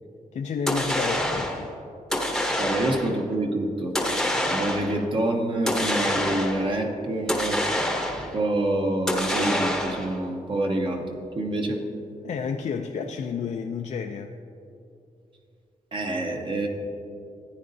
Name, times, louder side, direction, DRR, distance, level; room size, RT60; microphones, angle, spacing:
voice 1, 0.3-1.7 12.2-14.4, left 6 dB, 55° left, 4 dB, 0.4 m, -31 dB
sound 1, 0.7-1.6 2.1-3.2 3.9-5.0 5.7-6.7 7.3-8.4 9.1-10.2, left 1 dB, 5° left, 0.8 m, -26 dB
voice 2, 2.6-3.9 4.5-7.6 8.3-11.1 11.3-11.8 15.9-16.7, right 1 dB, 35° right, 2 dB, 0.8 m, -26 dB
14.5 x 9.5 x 2.6 m, 2.6 s
wide cardioid pair, 165°, 14 cm